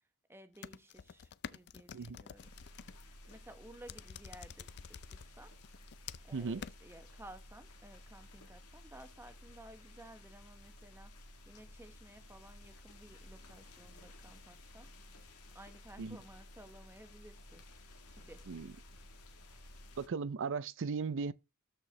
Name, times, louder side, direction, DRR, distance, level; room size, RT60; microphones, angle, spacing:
voice 1, 0.3-2.6 3.1-5.5 6.2-14.9 15.5-18.5, right 1 dB, 10° right, 0.9 m, -56 dB
sound 1, 0.5-2.9 3.9-5.2 5.6-6.3 6.6-6.7, left 7 dB, 50° left, 0.4 m, -48 dB
sound 2, 2.4-20.1, left 1 dB, 85° left, 1.5 m, -55 dB
voice 2, 20.0-21.3, right 5 dB, 60° right, 0.5 m, -37 dB
13.0 x 4.4 x 3.3 m
head